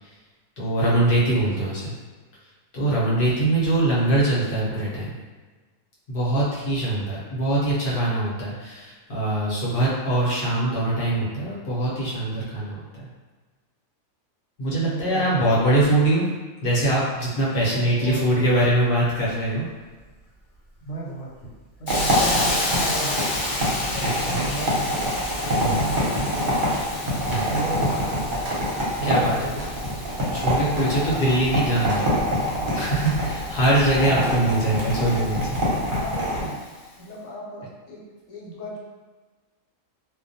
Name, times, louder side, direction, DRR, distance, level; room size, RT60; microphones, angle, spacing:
voice 1, 0.6-1.9 2.7-5.1 6.1-13.1 14.6-16.2 16.6-19.6 24.0-24.4 25.6-25.8 27.3-27.4 29.0-29.5 30.3-32.0 32.7-35.4, right 1 dB, 50° left, -8 dB, 0.9 m, -22 dB
voice 2, 14.6-15.6 17.6-18.4 20.8-21.3 21.8-23.4 23.8-25.0 25.5-26.8 27.2-28.2 28.9-29.7 30.6-31.0 32.9-33.3 34.0-34.5 35.9-36.6 37.0-38.0 38.3-38.8, right 2 dB, 85° left, -5 dB, 1.1 m, -34 dB
Hiss, 21.9-36.6, left 1 dB, 65° left, 1.1 m, -32 dB
sound 1, 21.9-36.4, equal, 50° right, 0.8 m, -26 dB
sound 2, 26.1-35.4, right 2 dB, 65° right, 0.4 m, -41 dB
2.3 x 2.1 x 2.6 m, 1.3 s
omnidirectional pair, 1.3 m